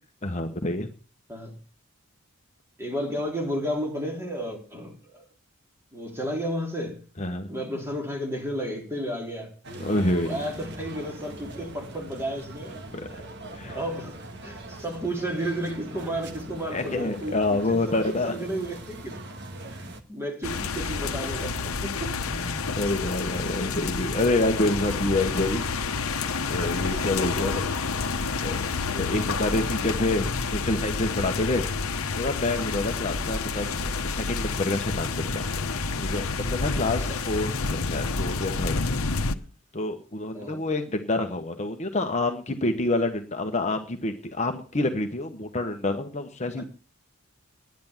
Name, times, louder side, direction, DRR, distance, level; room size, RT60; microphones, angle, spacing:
voice 1, 0.2-0.9 7.2-7.5 9.8-10.4 12.9-13.1 13.5-13.8 16.7-18.4 22.3-25.6 26.5-27.5 28.4-31.6 32.2-35.4 36.0-38.8 39.7-46.6, left 2 dB, 30° left, 5 dB, 1.2 m, -27 dB
voice 2, 2.8-5.2 5.9-7.0 7.5-9.5 10.2-12.8 13.1-13.2 13.6-19.1 19.7-22.2 22.9-23.0 27.2-27.6 32.9-33.2 36.8-37.2 40.3-40.6 46.6-46.7, equal, 10° right, 0 dB, 3.7 m, -33 dB
sound 1, 9.6-20.0, right 2 dB, 55° right, 1.8 m, -41 dB
sound 2, 20.4-39.3, left 4 dB, 85° left, 1.1 m, -29 dB
10.5 x 10.5 x 7.3 m, 0.38 s
head